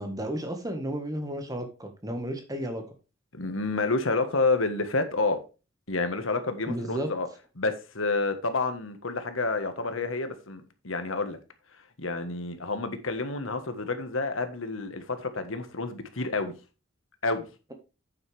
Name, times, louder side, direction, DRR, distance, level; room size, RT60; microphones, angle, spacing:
voice 1, 0.0-2.8 6.7-7.1, equal, 15° right, 1.7 m, -33 dB
voice 2, 3.3-5.4 5.9-7.3 7.6-11.4 12.0-16.5 17.2-17.5, left 3 dB, 75° left, 1.6 m, -29 dB
8.7 x 8.0 x 3.5 m
head